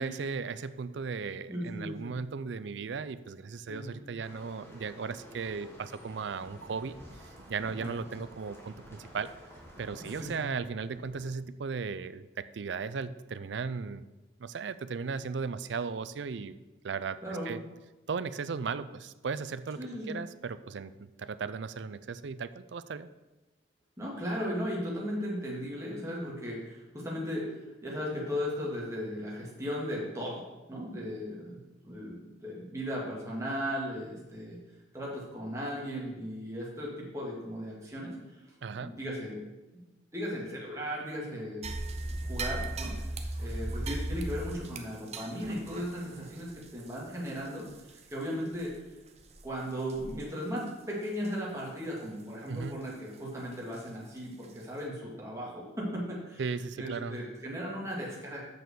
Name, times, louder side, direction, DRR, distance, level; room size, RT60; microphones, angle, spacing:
voice 1, 0.0-9.3 9.8-14.1 14.4-16.6 16.8-17.2 17.5-17.6 18.1-19.8 20.1-23.1 38.6-38.9 52.5-52.8 56.4-57.2, right 5 dB, 70° right, 13 dB, 0.4 m, -36 dB
voice 2, 1.5-2.1 3.7-4.0 7.8-7.9 10.0-10.4 17.2-17.5 19.8-20.2 24.0-27.4 27.8-30.4 30.7-34.6 34.9-38.4 38.7-39.4 39.7-39.8 40.1-41.7 42.2-42.9 43.4-48.7 49.4-56.4 56.8-58.4, equal, 15° right, -4 dB, 2.1 m, -36 dB
sound 1, 4.2-10.3, equal, 15° left, 1.3 m, -52 dB
sound 2, 6.1-11.3, right 2 dB, 55° right, 1.2 m, -55 dB
sound 3, 41.6-48.2 48.5-48.7 49.2-49.4 49.9-50.2 50.6-50.7 51.2-51.3 53.7-53.8 54.4-54.5, right 2 dB, 35° right, 0.8 m, -37 dB
6.8 x 6.2 x 6.8 m, 1.1 s
head